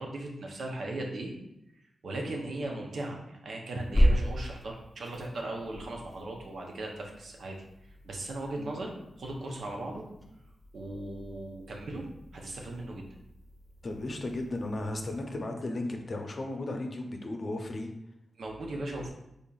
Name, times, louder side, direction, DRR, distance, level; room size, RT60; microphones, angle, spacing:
voice 1, 0.0-1.3 2.0-7.6 8.0-10.0 10.7-12.0 12.3-13.1 18.4-19.1, right 2 dB, 75° right, 0 dB, 0.7 m, -37 dB
sound 1, 3.8-15.3, equal, 15° left, 0.8 m, -34 dB
voice 2, 13.8-17.9, left 2 dB, 50° left, 3 dB, 0.6 m, -35 dB
3.8 x 3.4 x 2.4 m, 0.85 s
cardioid pair, 55°, 0 cm